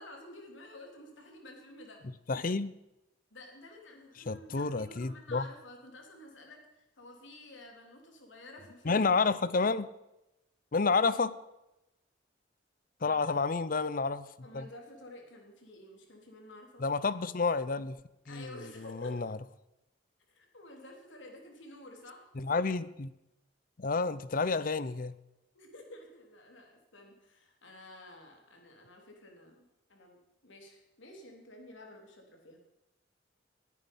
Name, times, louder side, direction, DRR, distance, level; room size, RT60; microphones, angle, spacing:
voice 1, 0.0-2.0 3.3-9.1 13.0-13.3 14.4-16.8 18.2-19.2 20.3-22.3 25.5-32.6, left 1 dB, 80° left, 1 dB, 3.3 m, -51 dB
voice 2, 2.3-2.8 4.3-5.4 8.9-9.9 10.7-11.3 13.0-14.3 14.5-14.6 16.8-18.0 18.3-18.5 18.9-19.4 22.4-23.1 23.8-25.2, left 4 dB, 45° left, 16 dB, 0.6 m, -30 dB
20.0 x 9.4 x 5.4 m, 0.92 s
head